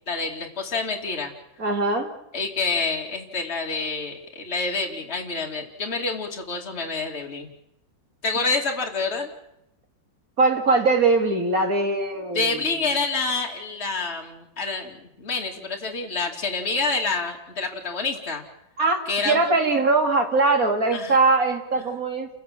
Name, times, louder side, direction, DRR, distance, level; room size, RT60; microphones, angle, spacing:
voice 1, 0.1-1.3 2.3-7.5 8.2-9.3 12.3-18.4 19.1-19.4 20.9-21.2, left 4 dB, 35° left, 1 dB, 2.9 m, -27 dB
voice 2, 1.6-2.1 10.4-12.6 18.8-19.0 19.2-22.3, right 3 dB, 45° right, 4 dB, 3.1 m, -21 dB
29.5 x 16.0 x 7.6 m, 0.83 s
omnidirectional pair, 2.1 m